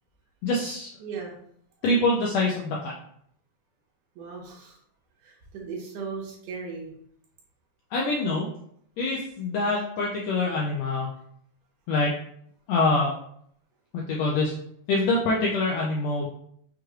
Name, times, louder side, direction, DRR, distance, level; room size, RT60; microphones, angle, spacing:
voice 1, 0.4-0.9 1.8-2.9 7.9-8.5 9.0-11.1 11.9-12.1 12.7-13.1 13.9-14.5 14.9-16.3, left 2 dB, 80° left, -3 dB, 1.5 m, -25 dB
voice 2, 1.0-1.3 4.2-4.8 5.2-6.9, right 5 dB, 85° right, -2 dB, 2.6 m, -37 dB
6.0 x 3.1 x 2.3 m, 0.68 s
omnidirectional pair, 3.6 m